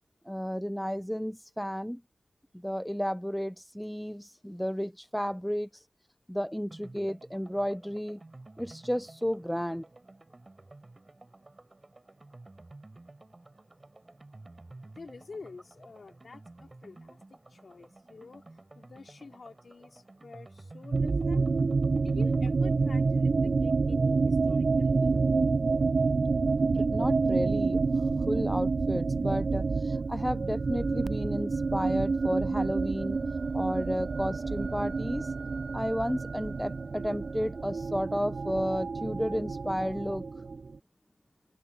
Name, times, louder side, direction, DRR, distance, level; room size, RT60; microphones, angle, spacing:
voice 1, 0.3-2.0 2.5-5.9 6.3-8.2 8.6-9.8 26.6-33.2 33.5-35.3 35.7-40.4, equal, ahead, 0.6 m, -32 dB
sound 1, 6.7-25.3 25.6-25.7 25.9-26.0, right 2 dB, 30° right, 4.1 m, -52 dB
voice 2, 14.8-18.4 18.7-21.5 22.0-25.2, left 4 dB, 55° left, 3.8 m, -48 dB
sound 2, 20.9-40.8, right 4 dB, 50° right, 0.4 m, -28 dB
open air
cardioid pair, 55°, 0 cm